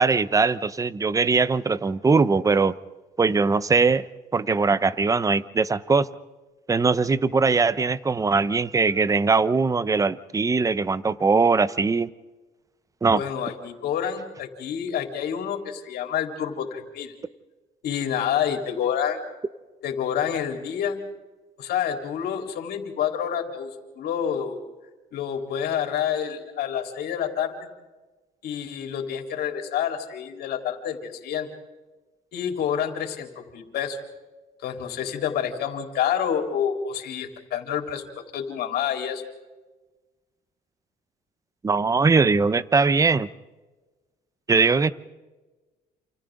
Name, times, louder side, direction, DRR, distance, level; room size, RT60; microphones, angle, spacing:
voice 1, 0.0-2.7 3.2-4.0 4.3-6.1 6.7-12.1 13.0-13.2 41.6-43.3 44.5-44.9, right 4 dB, 20° right, 16 dB, 0.8 m, -21 dB
voice 2, 13.1-17.1 17.8-19.2 19.8-21.0 21.6-23.7 24.0-24.6 25.1-27.7 28.4-31.5 32.3-34.0 34.6-38.0 38.3-39.2, left 8 dB, 70° left, 3 dB, 3.9 m, -28 dB
29.0 x 28.5 x 3.9 m, 1.2 s
cardioid pair, 110°, 17 cm